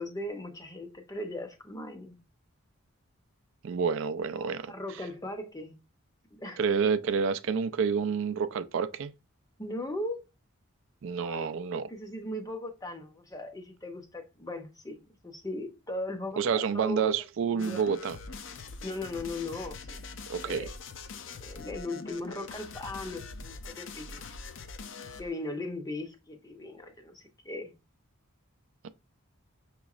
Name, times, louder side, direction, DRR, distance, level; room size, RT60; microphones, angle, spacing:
voice 1, 0.0-2.2 4.3-5.7 6.4-6.9 9.6-10.2 11.2-11.6 11.9-17.1 17.5-17.9 18.8-20.0 20.4-20.7 21.4-24.2 25.2-27.7, left 1 dB, 15° left, 0.6 m, -38 dB
voice 2, 3.6-5.0 6.6-9.1 11.0-11.9 16.4-18.2 20.3-20.7, right 6 dB, 60° right, 0.3 m, -29 dB
sound 1, 17.6-25.4, left 4 dB, 60° left, 0.5 m, -43 dB
6.0 x 3.0 x 2.4 m
head